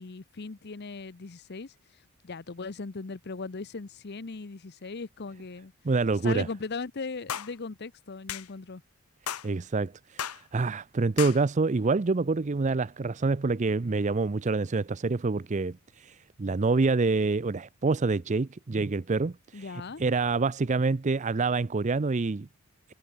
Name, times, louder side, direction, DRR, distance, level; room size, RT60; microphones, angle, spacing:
voice 1, 0.0-1.7 2.2-5.7 6.2-8.8 19.5-20.0, left 4 dB, 50° left, 0.7 m, -38 dB
voice 2, 5.8-6.5 9.4-22.5, right 3 dB, 35° right, 0.5 m, -27 dB
sound 1, 7.3-7.5 8.3-8.5 9.3-9.5 10.2-10.4 11.2-11.4, left 9 dB, 85° left, 1.0 m, -34 dB
head